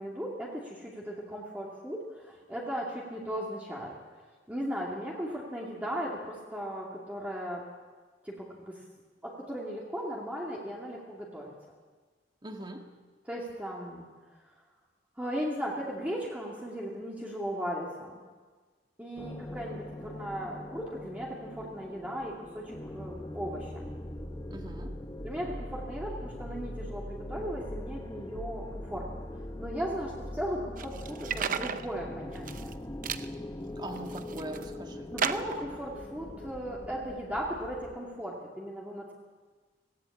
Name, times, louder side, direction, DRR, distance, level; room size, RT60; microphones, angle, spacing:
voice 1, 0.0-3.9 4.5-7.6 8.2-8.8 9.2-11.5 13.3-14.1 15.2-18.1 19.0-23.8 25.2-29.2 29.6-32.8 35.1-39.1, equal, 10° right, -4 dB, 2.6 m, -37 dB
voice 2, 12.4-12.9 24.5-25.0 33.8-35.5, right 1 dB, 25° right, 3 dB, 1.9 m, -42 dB
sound 1, 19.2-38.0, left 1 dB, 20° left, 1.1 m, -41 dB
sound 2, 30.8-31.8 32.3-32.7 33.0-33.3 33.9-34.6 35.2-35.7, right 7 dB, 45° right, 0.7 m, -33 dB
18.0 x 17.0 x 8.5 m, 1.4 s
head